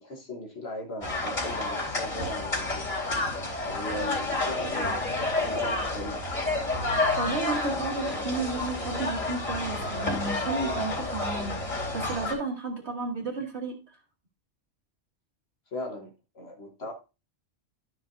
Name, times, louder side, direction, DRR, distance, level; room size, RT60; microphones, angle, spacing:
voice 1, 0.0-2.9 3.7-6.2 15.7-16.9, left 1 dB, 70° left, 1.6 m, -38 dB
sound 1, 1.0-12.3, left 2 dB, 40° left, 3.8 m, -30 dB
voice 2, 7.2-13.8, right 3 dB, 75° right, 2.1 m, -33 dB
13.0 x 5.9 x 2.7 m
omnidirectional pair, 1.1 m